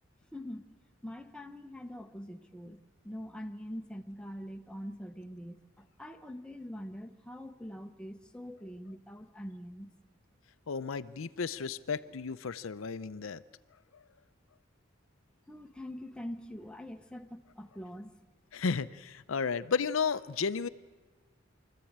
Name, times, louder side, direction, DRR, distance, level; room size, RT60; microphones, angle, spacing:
voice 1, 0.3-0.7 1.0-9.9 15.5-18.2, equal, 5° left, 6 dB, 0.9 m, -44 dB
voice 2, 10.7-13.4 18.5-20.7, left 5 dB, 80° left, 14 dB, 0.6 m, -33 dB
24.5 x 14.0 x 8.7 m, 1.4 s
head